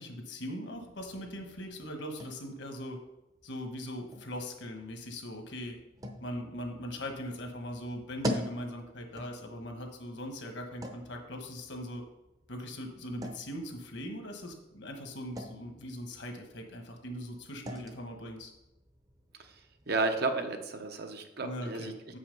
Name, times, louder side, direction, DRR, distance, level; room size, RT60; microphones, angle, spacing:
voice 1, 0.0-3.0 3.4-5.8 6.2-12.0 12.5-18.5 21.4-22.2, equal, 70° left, 4 dB, 1.3 m, -40 dB
sound 1, 0.7-20.3, equal, 20° right, 0.7 m, -45 dB
voice 2, 19.9-21.9, right 3 dB, 55° right, 6 dB, 0.9 m, -32 dB
7.2 x 5.7 x 5.4 m, 0.93 s
head